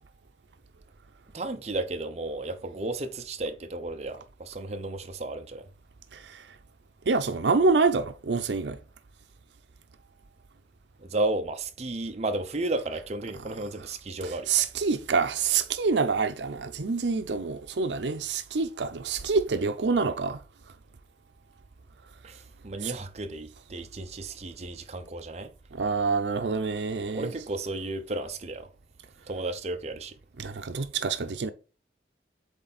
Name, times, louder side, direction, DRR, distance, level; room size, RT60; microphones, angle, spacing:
voice 1, 1.3-5.7 11.0-14.5 22.2-25.5 27.1-28.7 29.3-30.1, right 2 dB, 40° right, 0.7 m, -33 dB
voice 2, 7.1-8.8 14.2-20.4 22.8-22.9 25.7-27.3 30.4-31.5, right 4 dB, 80° right, 0.6 m, -26 dB
8.1 x 3.4 x 4.1 m
head